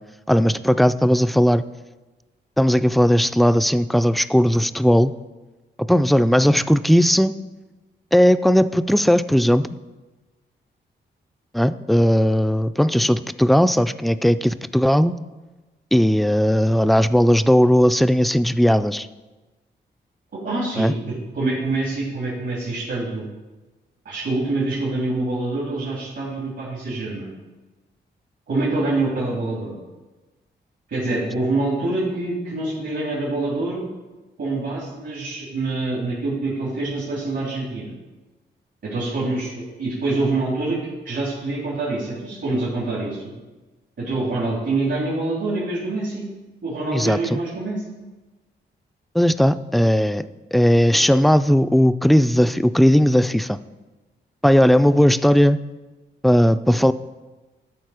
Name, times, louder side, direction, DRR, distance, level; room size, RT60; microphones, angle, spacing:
voice 1, 0.3-1.6 2.6-5.1 5.9-7.4 8.1-9.7 11.5-15.1 15.9-19.1 20.8-20.9 46.9-47.4 49.1-50.2 50.5-53.6 54.4-55.6 56.2-56.9, equal, ahead, 13 dB, 0.3 m, -17 dB
voice 2, 20.3-23.2 24.0-27.3 28.5-29.7 30.9-33.8 34.4-37.9 38.8-40.8 41.0-43.3 44.0-46.2 46.6-48.0, right 2 dB, 75° right, -7 dB, 2.9 m, -25 dB
12.5 x 4.2 x 4.9 m, 1.2 s
cardioid pair, 65°, 19 cm